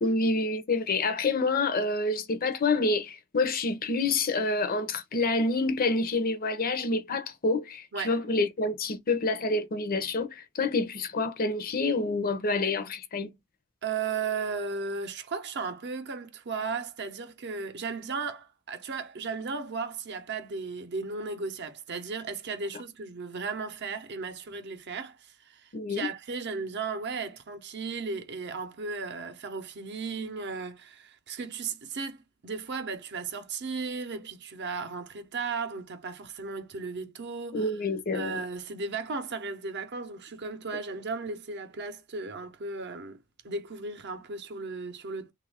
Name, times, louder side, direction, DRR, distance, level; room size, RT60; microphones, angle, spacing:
voice 1, 0.0-13.3 25.7-26.1 37.5-38.4, left 3 dB, 40° left, 0.6 m, -28 dB
voice 2, 13.8-37.8 38.1-45.3, right 4 dB, 50° right, 0.7 m, -35 dB
3.1 x 2.4 x 3.3 m
head